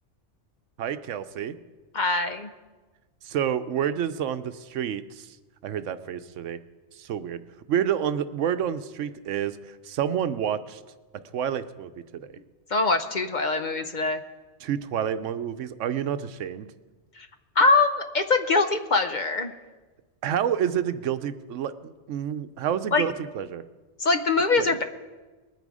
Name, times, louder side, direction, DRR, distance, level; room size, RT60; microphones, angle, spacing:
voice 1, 0.8-1.5 3.2-5.4 5.6-6.6 7.0-7.4 7.7-10.8 11.3-12.3 14.6-16.7 20.2-23.6 24.6-24.7, right 9 dB, 85° right, 12 dB, 1.0 m, -29 dB
voice 2, 1.9-2.5 12.7-14.2 17.2-17.3 17.6-19.5 22.9-23.0 24.0-24.8, left 3 dB, 45° left, 8 dB, 0.7 m, -23 dB
20.5 x 9.2 x 4.8 m, 1.3 s
omnidirectional pair, 1.2 m